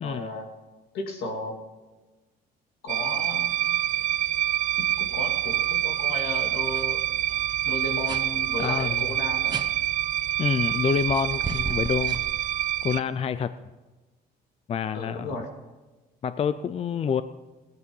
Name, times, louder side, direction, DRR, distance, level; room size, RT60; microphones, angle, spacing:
voice 1, 0.0-0.5 0.9-1.6 2.8-3.5 4.8-7.0 7.6-9.6 14.9-15.5, left 2 dB, 80° left, 3 dB, 2.7 m, -34 dB
sound 1, 2.9-13.0, right 13 dB, 50° right, 0.5 m, -26 dB
sound 2, 6.7-6.8 7.1-7.4 8.1-8.2 9.5-9.7 10.9-12.9, right 4 dB, 25° right, 1.0 m, -36 dB
voice 2, 8.6-9.1 10.4-12.2 12.8-13.5 14.7-15.3 16.2-17.2, left 7 dB, 35° left, 13 dB, 0.5 m, -27 dB
18.0 x 10.5 x 5.5 m, 1.2 s
cardioid pair, 110°, 17 cm